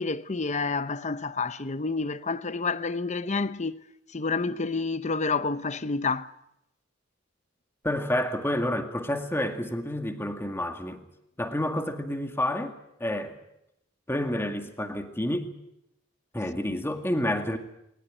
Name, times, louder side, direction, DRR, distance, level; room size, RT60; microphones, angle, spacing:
voice 1, 0.0-3.8 4.1-6.3 16.6-16.8, left 4 dB, 35° left, 0.8 m, -29 dB
voice 2, 7.8-11.0 11.4-13.4 14.1-15.5 16.3-17.6, left 1 dB, 10° left, 2.1 m, -29 dB
21.0 x 20.0 x 9.0 m
head